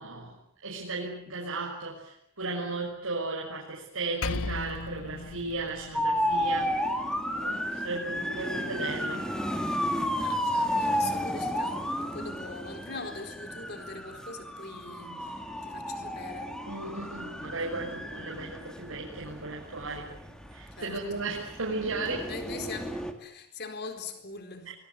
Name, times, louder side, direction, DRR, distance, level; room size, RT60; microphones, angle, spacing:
voice 1, 0.0-7.0 7.3-9.4 12.2-12.4 16.6-20.2 20.5-22.3, right 3 dB, 75° right, 6.1 m, -35 dB
Percussion, 4.2-9.0, left 3 dB, 85° left, 1.5 m, -39 dB
sound 1, 5.9-23.1, equal, 5° left, 2.6 m, -33 dB
voice 2, 10.2-16.6 20.8-21.4 22.3-24.7, left 3 dB, 50° left, 4.5 m, -42 dB
25.0 x 22.0 x 9.6 m
head